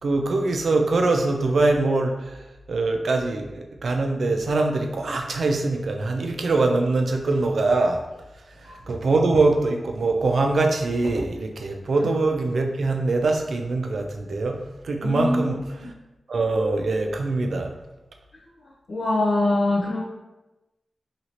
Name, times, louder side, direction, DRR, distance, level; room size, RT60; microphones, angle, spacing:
voice 1, 0.0-2.4 2.7-8.0 8.6-14.6 14.8-15.9 16.3-17.7, right 3 dB, 70° right, 3 dB, 0.4 m, -23 dB
voice 2, 15.0-15.5 18.9-20.1, left 2 dB, 60° left, -7 dB, 0.6 m, -23 dB
2.8 x 2.8 x 2.9 m, 1.0 s
wide cardioid pair, 105°, 0 cm